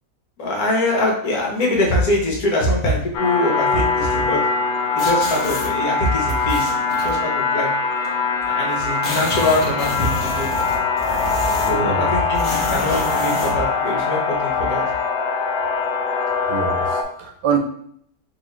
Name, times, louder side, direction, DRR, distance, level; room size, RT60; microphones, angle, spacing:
voice 1, 0.4-4.4 4.9-7.7 8.5-10.5 11.7-14.8, left 1 dB, 60° left, -1 dB, 1.3 m, -23 dB
sound 1, 3.1-17.0, left 4 dB, 85° left, 1.2 m, -22 dB
sound 2, 5.0-5.7 6.3-7.1 8.0-8.1 8.4-8.5 8.7-11.9 12.3-13.6, left 1 dB, 35° left, 1.0 m, -29 dB
voice 2, 11.6-12.1 16.5-17.6, right 7 dB, 75° right, 4 dB, 1.1 m, -25 dB
3.8 x 2.8 x 3.1 m, 0.65 s
omnidirectional pair, 1.9 m